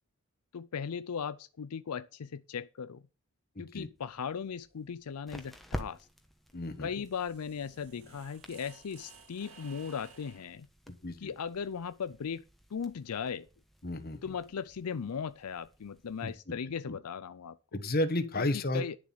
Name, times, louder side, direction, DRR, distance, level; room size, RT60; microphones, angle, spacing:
voice 1, 0.5-3.0 3.6-6.1 6.8-10.7 11.2-12.4 12.7-13.5 14.2-17.6 18.5-19.0, left 6 dB, 85° left, 0.5 m, -38 dB
voice 2, 3.5-3.9 6.5-6.9 10.9-11.3 13.8-14.3 16.2-16.5 16.9-17.0 17.7-18.8, left 1 dB, 40° left, 1.3 m, -33 dB
sound 1, 3.9-16.3, equal, ahead, 1.2 m, -50 dB
sound 2, 6.7-10.6, right 5 dB, 70° right, 2.1 m, -56 dB
11.0 x 7.3 x 5.7 m
head